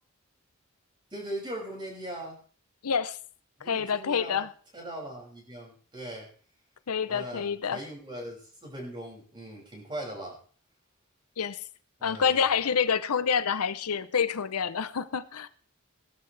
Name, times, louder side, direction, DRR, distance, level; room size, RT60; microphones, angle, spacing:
voice 1, 1.1-2.4 3.6-4.5 4.7-6.3 7.1-10.4 12.0-12.5, right 1 dB, 20° right, 6.3 m, -40 dB
voice 2, 2.8-3.2 3.6-4.5 6.9-7.8 11.4-11.6 12.0-15.5, left 6 dB, 90° left, 0.7 m, -27 dB
19.0 x 12.5 x 3.3 m
head